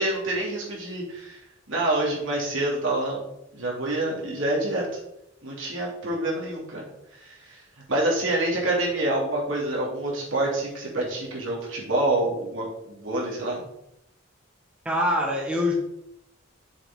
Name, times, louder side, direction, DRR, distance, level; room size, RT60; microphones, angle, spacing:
voice 1, 0.0-1.4 1.7-3.3 3.5-4.9 5.4-6.8 7.2-7.6 7.9-13.6, right 1 dB, 70° right, -3 dB, 2.9 m, -27 dB
voice 2, 14.8-15.7, left 1 dB, 5° right, -2 dB, 1.4 m, -24 dB
7.4 x 6.9 x 3.8 m, 0.81 s
head